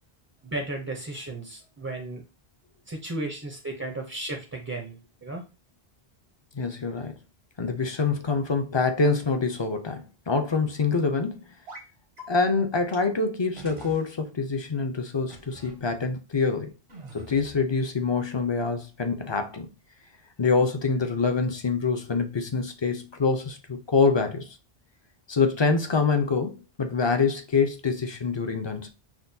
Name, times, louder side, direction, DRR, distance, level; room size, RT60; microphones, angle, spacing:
voice 1, 0.4-2.2 2.9-5.4, right 2 dB, 20° right, 0.5 m, -34 dB
voice 2, 6.6-7.1 7.6-11.5 12.3-16.7 17.1-19.7 20.4-24.6 25.3-28.9, left 4 dB, 35° left, 0.4 m, -25 dB
sound 1, 11.7-11.9 12.2-12.3 12.9-13.0 13.6-14.0 15.3-15.8 16.9-17.6, right 1 dB, 80° right, 1.5 m, -44 dB
5.8 x 2.2 x 2.6 m
omnidirectional pair, 1.0 m